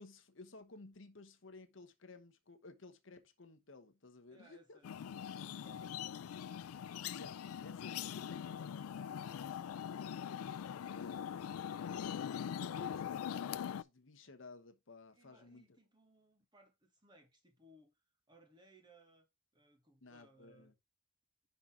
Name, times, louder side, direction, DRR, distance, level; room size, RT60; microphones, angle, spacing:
voice 1, 0.0-4.8 7.1-10.2 10.9-12.0 12.4-15.6 20.0-20.7, left 3 dB, 60° left, 1.0 m, -56 dB
voice 2, 4.3-6.2 15.1-18.0 18.3-19.3 19.5-20.7, right 1 dB, 20° right, 1.5 m, -65 dB
sound 1, 4.8-13.8, left 8 dB, 90° left, 0.3 m, -42 dB
5.9 x 3.8 x 5.8 m
head